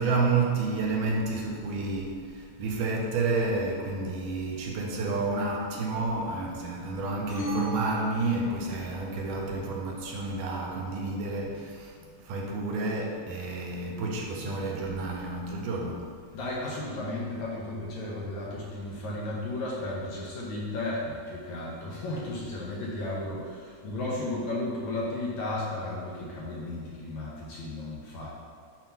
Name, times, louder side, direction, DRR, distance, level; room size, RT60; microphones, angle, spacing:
voice 1, 0.0-12.0 12.2-16.1, right 3 dB, 75° right, -1 dB, 2.1 m, -30 dB
sound 1, 7.3-9.0, right 1 dB, 35° left, 1.4 m, -34 dB
voice 2, 16.3-28.3, left 2 dB, 70° left, -5 dB, 1.9 m, -34 dB
7.4 x 2.8 x 5.7 m, 2.1 s
omnidirectional pair, 3.9 m